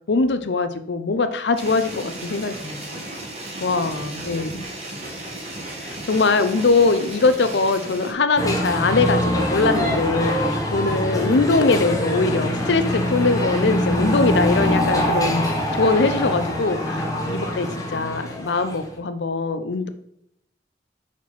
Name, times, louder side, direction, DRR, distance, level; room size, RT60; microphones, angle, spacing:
voice 1, 0.1-3.0 3.6-4.6 5.8-15.5 15.7-19.9, left 3 dB, 85° left, 10 dB, 0.6 m, -22 dB
sound 1, 1.6-8.1, right 1 dB, 40° right, 1.6 m, -35 dB
sound 2, 8.4-18.9, equal, 20° left, 1.1 m, -24 dB
6.0 x 4.4 x 4.2 m, 0.75 s
head